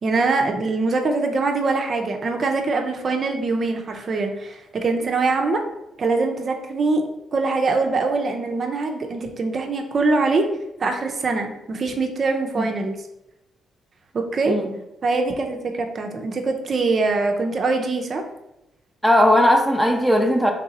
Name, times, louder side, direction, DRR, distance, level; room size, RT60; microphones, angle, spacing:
voice 1, 0.0-5.6 6.0-7.0 7.3-10.5 10.8-13.0 14.1-14.6 15.0-18.2, right 3 dB, 45° right, 3 dB, 0.5 m, -23 dB
voice 2, 12.5-12.9 14.5-14.6 19.0-20.5, left 1 dB, ahead, 3 dB, 0.6 m, -18 dB
3.3 x 2.7 x 4.0 m, 0.88 s
cardioid pair, 90°, 0 cm